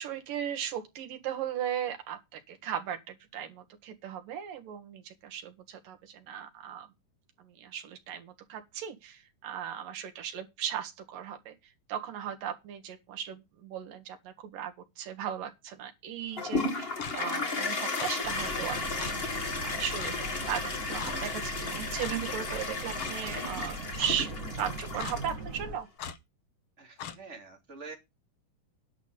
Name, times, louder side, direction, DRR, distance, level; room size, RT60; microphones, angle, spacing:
voice 1, 0.0-6.9 7.4-11.6 11.9-19.4 19.6-25.9, right 9 dB, 80° right, 3.4 m, -37 dB
Toilet flush, 16.4-25.6, left 3 dB, 55° left, 0.6 m, -34 dB
Clock, 17.0-17.2 18.0-18.1 19.0-19.1 20.0-20.2 21.0-21.2 22.0-22.2 23.0-23.1 24.0-24.2 25.0-25.2 26.0-26.2 27.0-27.2, left 8 dB, 75° left, 1.2 m, -39 dB
Boat Water vehicle, 18.2-25.8, right 2 dB, 35° right, 1.3 m, -41 dB
voice 2, 26.8-28.0, right 4 dB, 20° right, 2.8 m, -46 dB
10.5 x 5.7 x 8.1 m
omnidirectional pair, 3.8 m